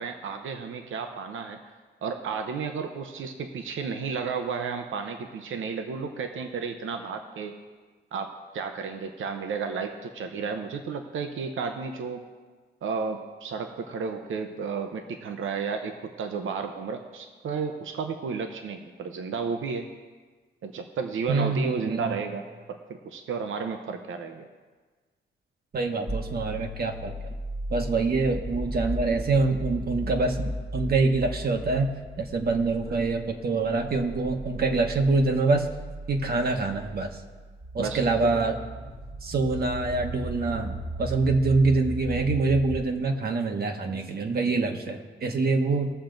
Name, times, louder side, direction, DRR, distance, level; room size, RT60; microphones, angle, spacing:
voice 1, 0.0-1.6 2.0-7.6 8.1-12.2 12.8-19.9 20.6-22.8 23.0-24.5 37.8-38.3, right 5 dB, 85° right, 5 dB, 0.8 m, -32 dB
voice 2, 21.3-22.2 25.7-27.4 27.7-31.9 32.2-35.7 36.1-37.2 37.7-38.5 39.2-45.9, right 3 dB, 50° right, 4 dB, 1.1 m, -25 dB
sound 1, 26.1-42.8, equal, 5° right, 0.9 m, -36 dB
19.5 x 7.2 x 3.9 m, 1.4 s
wide cardioid pair, 140°, 20 cm